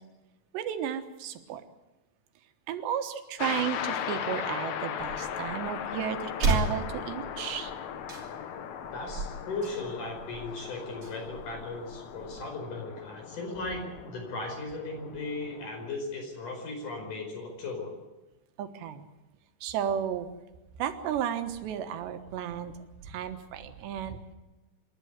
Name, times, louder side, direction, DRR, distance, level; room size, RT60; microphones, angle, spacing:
voice 1, 0.5-1.6 2.7-7.7 18.6-19.1 19.6-20.3 20.8-22.8 23.0-24.2, right 9 dB, 80° right, 8 dB, 3.5 m, -33 dB
sound 1, 3.4-15.9, left 8 dB, 70° left, 1.8 m, -38 dB
sound 2, 5.0-12.4, right 3 dB, 35° right, 3.4 m, -36 dB
voice 2, 8.9-17.9, left 3 dB, 50° left, 3 dB, 6.3 m, -37 dB
26.5 x 12.0 x 9.5 m, 1.1 s
omnidirectional pair, 4.9 m